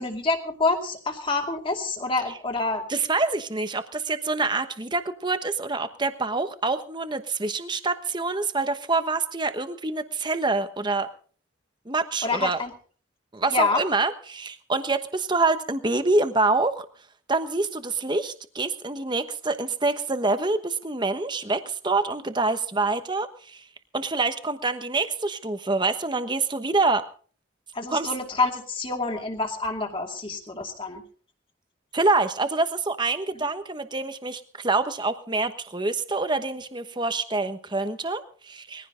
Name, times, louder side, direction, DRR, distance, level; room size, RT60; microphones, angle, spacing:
voice 1, 0.0-2.8 12.2-12.7 13.5-13.8 27.7-31.0, left 3 dB, 25° left, 3 dB, 2.5 m, -27 dB
voice 2, 2.9-11.1 11.8-12.6 13.3-16.8 17.3-23.7 23.9-27.1 27.9-28.1 31.9-38.9, right 3 dB, 20° right, 9 dB, 1.1 m, -26 dB
21.0 x 15.5 x 3.8 m, 0.43 s
head